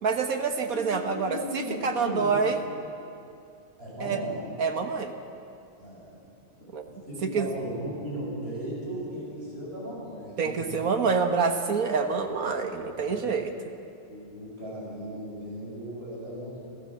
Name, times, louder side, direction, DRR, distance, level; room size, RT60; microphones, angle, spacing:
voice 1, 0.0-2.6 4.0-4.2 4.6-5.1 6.7-6.8 7.2-7.5 10.4-13.5, right 5 dB, 70° right, 5 dB, 1.9 m, -27 dB
voice 2, 1.0-2.4 3.8-4.5 5.8-6.2 6.9-10.6 13.0-13.3 14.1-16.6, equal, 40° right, -6 dB, 6.8 m, -37 dB
27.0 x 15.5 x 7.3 m, 2.5 s
omnidirectional pair, 1.6 m